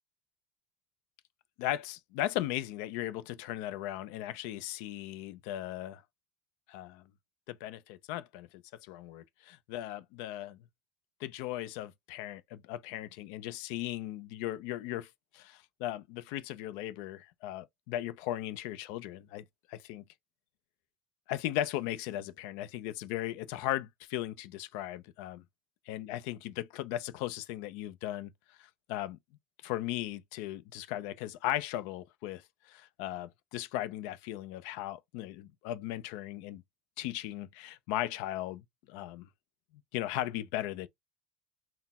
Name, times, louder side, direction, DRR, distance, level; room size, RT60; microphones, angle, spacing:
voice 1, 1.6-6.0 6.7-7.1 7.5-10.6 11.2-20.0 21.3-25.4 25.9-28.3 28.6-29.2 29.6-36.6 37.0-39.3 39.9-40.9, left 14 dB, 65° left, 0.4 m, -37 dB
4.0 x 2.0 x 4.1 m
cardioid pair, 175°, 4 cm